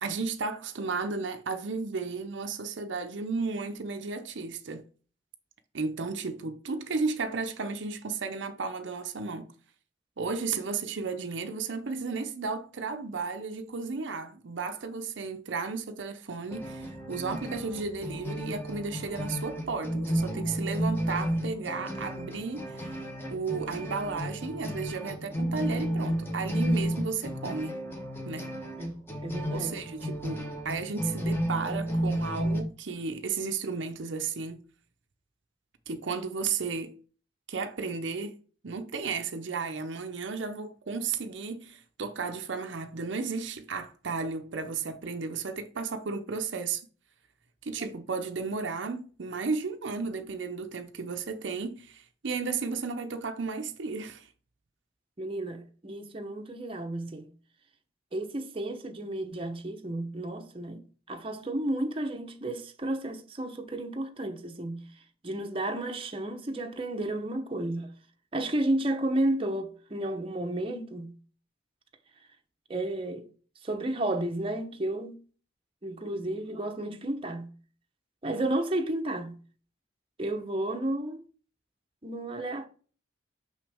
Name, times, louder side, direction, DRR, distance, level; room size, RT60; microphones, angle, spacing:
voice 1, 0.0-4.9 5.7-9.5 10.2-23.0 23.3-27.8 28.3-28.5 29.5-34.6 35.9-36.9 37.5-38.4 38.6-46.9 47.6-54.3, right 4 dB, 65° right, 0.6 m, -34 dB
sound 1, 16.5-32.6, equal, 10° left, 1.1 m, -32 dB
voice 2, 28.8-29.8 55.2-57.3 58.1-64.8 65.2-67.9 68.3-71.1 72.7-73.3 73.6-75.2 75.8-77.5 78.2-79.4 80.2-81.2 82.0-82.7, right 1 dB, 30° right, 0.8 m, -32 dB
6.1 x 5.7 x 3.4 m
head